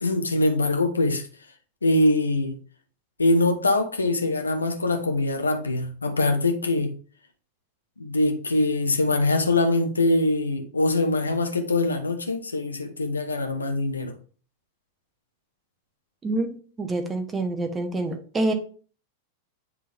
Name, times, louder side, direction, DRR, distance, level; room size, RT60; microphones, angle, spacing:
voice 1, 0.0-1.3 1.8-2.6 3.2-6.9 8.0-14.1, left 2 dB, 80° left, 1.1 m, -23 dB
voice 2, 16.2-18.5, right 2 dB, 20° right, 1.2 m, -27 dB
9.9 x 3.7 x 3.5 m
figure-of-eight pair, 90°, 0 cm